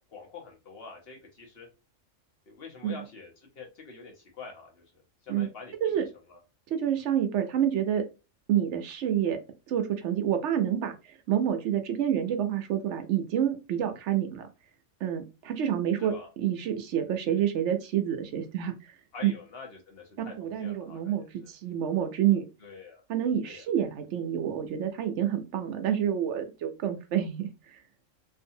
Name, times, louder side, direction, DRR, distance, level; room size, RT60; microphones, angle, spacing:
voice 1, 0.0-1.7 2.5-6.0 6.3-6.4 16.0-16.3 19.1-21.1 21.4-21.5 22.6-23.0 23.4-23.6, left 4 dB, 55° left, 1 dB, 1.0 m, -46 dB
voice 2, 6.7-8.0 8.5-9.4 9.7-14.4 15.0-16.1 16.4-18.9 19.2-19.3 20.2-22.4 23.1-27.8, right 10 dB, 70° right, 7 dB, 0.8 m, -28 dB
2.6 x 2.5 x 2.6 m, 0.29 s
omnidirectional pair, 1.3 m